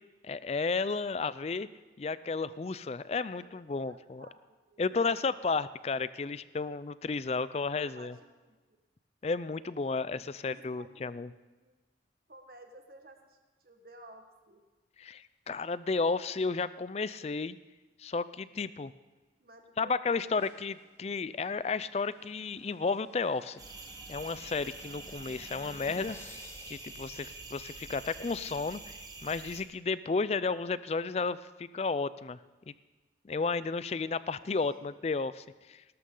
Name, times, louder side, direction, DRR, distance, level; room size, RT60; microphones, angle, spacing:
voice 1, 0.2-1.7 2.0-4.3 4.8-8.1 9.2-11.3 15.0-17.6 18.0-18.9 19.8-23.6 24.1-26.2 26.7-32.4 32.7-32.8 33.2-35.8, left 4 dB, 35° left, 16 dB, 0.4 m, -33 dB
voice 2, 3.3-5.2 5.4-5.6 6.2-6.3 7.7-8.8 10.2-11.2 11.5-11.7 12.3-14.6 19.4-20.3 34.4-34.9, right 1 dB, 55° right, 4 dB, 1.5 m, -55 dB
sound 1, 20.4-27.9, left 1 dB, 15° left, 1.1 m, -55 dB
sound 2, 23.6-29.6, right 3 dB, 20° right, 1.3 m, -46 dB
18.0 x 12.5 x 3.8 m, 1.2 s
head